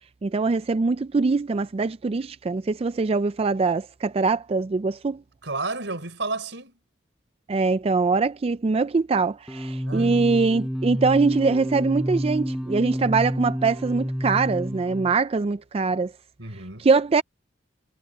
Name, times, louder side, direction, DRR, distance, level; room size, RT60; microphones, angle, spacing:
voice 1, 0.2-5.2 7.5-16.1 16.8-17.2, right 4 dB, 35° right, 0.4 m, -23 dB
voice 2, 5.4-6.8 9.8-10.3 16.4-16.8, right 3 dB, 80° right, 4.5 m, -32 dB
sound 1, 9.5-15.2, equal, 5° right, 7.5 m, -29 dB
head